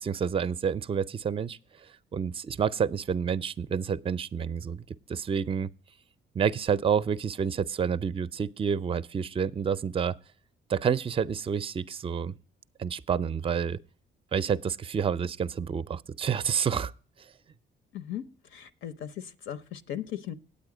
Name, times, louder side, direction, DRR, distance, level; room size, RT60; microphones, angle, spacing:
voice 1, 0.0-1.9 2.1-5.7 6.3-10.2 10.7-12.4 12.8-13.8 14.3-16.9, right 7 dB, 25° right, 0.4 m, -29 dB
voice 2, 17.9-18.2 18.5-20.3, left 10 dB, 75° left, 0.7 m, -37 dB
9.1 x 8.6 x 4.8 m
cardioid pair, 90°, 20 cm